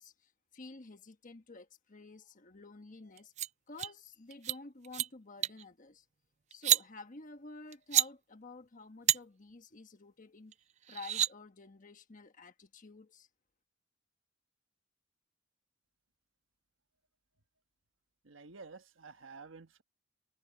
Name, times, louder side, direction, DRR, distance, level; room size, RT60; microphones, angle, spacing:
voice 1, 0.0-3.3 3.7-6.0 6.5-10.5 10.9-13.3, left 3 dB, 40° left, 1.2 m, -51 dB
sound 1, 3.2-3.5 3.8-3.9 4.3-4.6 4.8-5.1 5.4-5.6 6.5-6.8 7.7-8.1 9.1-9.2 10.5-10.6 10.9-11.3, right 12 dB, 35° right, 0.3 m, -28 dB
voice 2, 18.2-19.8, right 4 dB, 80° right, 1.3 m, -51 dB
head